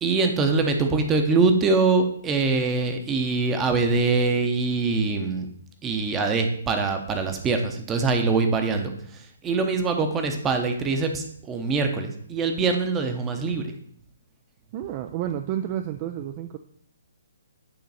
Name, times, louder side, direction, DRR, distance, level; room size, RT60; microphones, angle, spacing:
voice 1, 0.0-5.5 5.8-13.7, right 4 dB, 15° right, 5 dB, 0.8 m, -23 dB
voice 2, 14.7-16.6, right 11 dB, 35° right, 7 dB, 0.3 m, -30 dB
8.6 x 3.1 x 4.0 m, 0.65 s
figure-of-eight pair, 135°, 0 cm